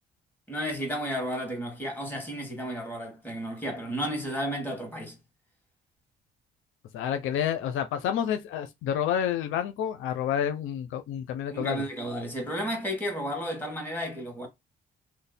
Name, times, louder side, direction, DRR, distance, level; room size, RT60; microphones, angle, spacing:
voice 1, 0.5-5.2 11.5-14.5, equal, 10° left, 1.9 m, -32 dB
voice 2, 6.9-11.8, left 9 dB, 85° left, 0.6 m, -29 dB
3.2 x 2.1 x 4.1 m
cardioid pair, 90°, 20 cm